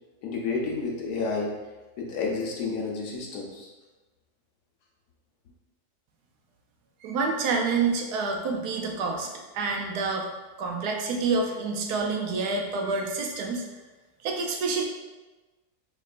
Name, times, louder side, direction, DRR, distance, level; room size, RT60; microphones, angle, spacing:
voice 1, 0.2-1.5 2.0-3.7, left 4 dB, 75° left, -2 dB, 1.3 m, -30 dB
voice 2, 7.0-10.3 10.6-13.6 14.2-14.8, right 4 dB, 80° right, 2 dB, 1.1 m, -28 dB
4.5 x 2.9 x 2.4 m, 1.2 s
omnidirectional pair, 1.7 m